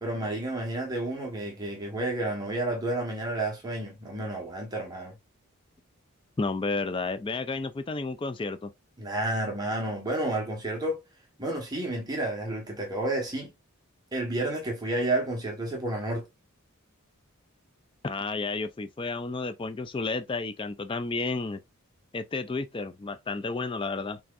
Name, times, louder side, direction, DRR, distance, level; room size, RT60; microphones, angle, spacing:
voice 1, 0.0-5.1 9.0-11.0 11.4-13.5 14.1-16.2, right 1 dB, 20° right, 1.3 m, -30 dB
voice 2, 6.4-8.7 18.0-21.6 22.1-24.2, left 3 dB, 25° left, 0.3 m, -31 dB
5.9 x 3.5 x 2.5 m
head